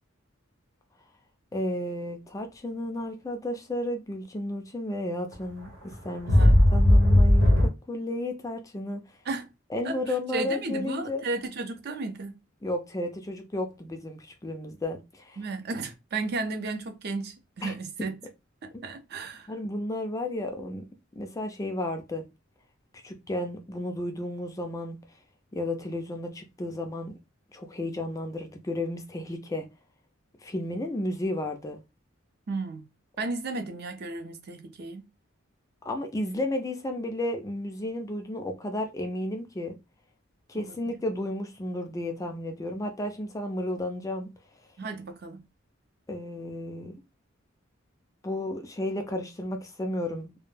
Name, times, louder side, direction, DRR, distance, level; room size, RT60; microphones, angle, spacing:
voice 1, 1.5-6.3 6.7-9.0 9.7-11.2 12.6-15.4 17.6-17.7 18.7-18.8 19.5-20.9 21.2-22.2 23.0-25.0 25.5-27.2 27.5-29.7 30.4-31.8 35.9-39.7 40.5-44.3 46.1-47.0 48.2-50.5, left 1 dB, 15° left, 0.3 m, -33 dB
sound 1, 5.3-5.4 5.8-7.7, left 1 dB, 70° right, 0.9 m, -17 dB
voice 2, 6.3-6.7 9.3-9.5 9.8-12.4 15.4-18.1 18.6-19.5 32.5-32.9 33.2-35.1 40.5-41.0 44.8-45.4, right 3 dB, 50° right, 0.5 m, -34 dB
2.1 x 2.1 x 3.1 m
head